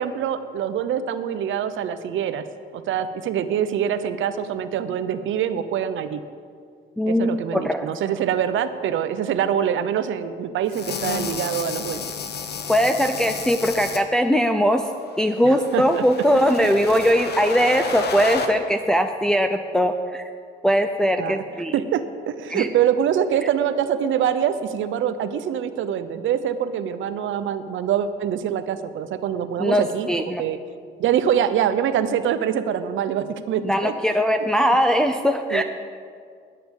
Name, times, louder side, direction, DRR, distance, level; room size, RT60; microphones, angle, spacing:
voice 1, 0.0-2.4 2.7-6.2 7.1-12.0 15.4-16.0 16.3-16.5 21.2-21.4 21.7-30.6 31.0-34.2 35.5-35.6, right 9 dB, 75° right, 11 dB, 0.7 m, -24 dB
voice 2, 7.0-7.9 12.7-14.8 15.2-20.2 20.6-21.7 22.5-22.7 29.6-30.4 33.6-35.6, equal, 5° left, 5 dB, 0.6 m, -20 dB
sound 1, 10.7-14.0 15.1-18.5, left 5 dB, 55° left, 1.2 m, -31 dB
10.5 x 8.5 x 7.1 m, 2.2 s
cardioid pair, 90°, 20 cm